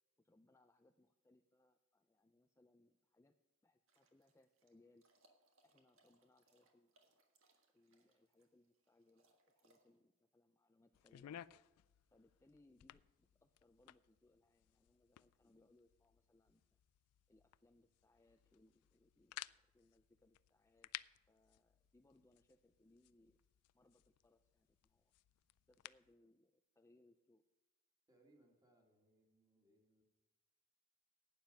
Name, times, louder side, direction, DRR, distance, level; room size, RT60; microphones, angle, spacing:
voice 1, 0.2-3.4 3.6-5.0 5.6-7.2 7.7-11.5 12.1-16.8 17.3-20.9 21.3-23.4 23.7-25.1 25.7-27.4, left 2 dB, 10° left, 6 dB, 0.4 m, -72 dB
sound 1, 3.9-10.0, right 2 dB, 60° right, 1.6 m, -77 dB
sound 2, 10.9-26.1, left 13 dB, 85° left, 0.3 m, -58 dB
voice 2, 28.1-30.0, right 1 dB, 15° right, 0 dB, 2.2 m, -72 dB
11.5 x 9.3 x 5.3 m, 1.1 s
head